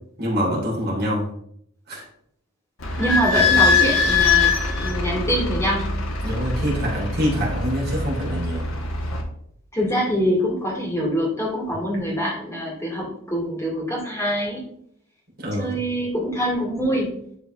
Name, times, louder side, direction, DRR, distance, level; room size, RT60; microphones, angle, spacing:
voice 1, 0.2-1.3 1.9-2.0 2.9-3.0 3.3-3.4 6.2-8.7 15.4-15.8, equal, 45° right, -4 dB, 3.2 m, -25 dB
Idling / Squeak, 2.8-9.2, left 4 dB, 70° left, 1.4 m, -22 dB
voice 2, 3.0-5.9 9.7-14.6 15.6-17.2, equal, 10° left, -4 dB, 2.5 m, -24 dB
11.5 x 4.1 x 3.4 m, 0.68 s
head